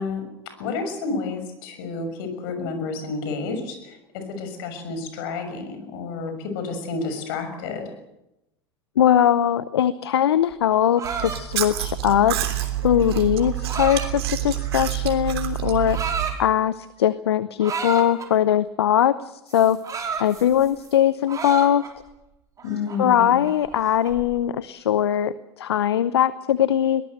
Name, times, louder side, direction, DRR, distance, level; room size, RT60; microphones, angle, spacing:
voice 1, 0.0-7.9 22.6-23.4, left 4 dB, 60° left, 8 dB, 6.4 m, -30 dB
voice 2, 9.0-16.0 16.4-19.8 20.2-21.8 23.0-27.0, left 10 dB, 80° left, 16 dB, 0.8 m, -21 dB
sound 1, 10.5-14.9 15.6-16.4 17.6-18.3 19.5-20.9 21.3-22.1 22.6-24.2, right 5 dB, 25° right, 5.1 m, -33 dB
Chewing mastication, 11.0-16.4, right 13 dB, 70° right, 3.3 m, -28 dB
22.5 x 19.5 x 7.9 m, 0.90 s
hypercardioid pair, 90°, 13 cm